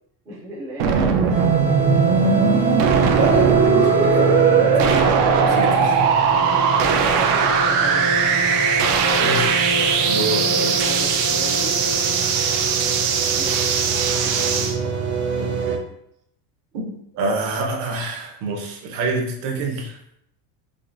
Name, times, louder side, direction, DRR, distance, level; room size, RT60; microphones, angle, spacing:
voice 1, 0.2-1.8 2.2-2.4 5.4-5.7 6.3-6.6 7.0-8.4 9.0-11.8 13.3-14.9, right 1 dB, 10° right, -7 dB, 0.3 m, -36 dB
sound 1, 0.8-14.7, right 6 dB, 80° right, 0.8 m, -20 dB
sound 2, 1.3-15.8, right 3 dB, 35° right, 0.7 m, -24 dB
voice 2, 3.1-6.1 9.2-9.5 10.1-10.9 15.4-15.8 16.7-20.0, right 2 dB, 60° right, 1 dB, 1.0 m, -27 dB
5.1 x 2.5 x 2.6 m, 0.75 s
cardioid pair, 175°, 46 cm